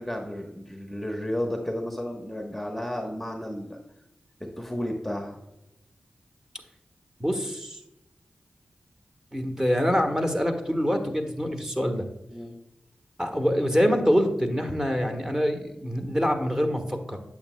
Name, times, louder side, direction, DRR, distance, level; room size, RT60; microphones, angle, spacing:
voice 1, 0.0-3.8 4.4-5.4 12.3-12.5, left 1 dB, 5° left, 2 dB, 1.1 m, -32 dB
voice 2, 7.2-7.8 9.3-12.0 13.2-17.2, equal, 15° right, 5 dB, 1.3 m, -25 dB
8.7 x 7.3 x 2.2 m, 0.90 s
cardioid pair, 50°, 3 cm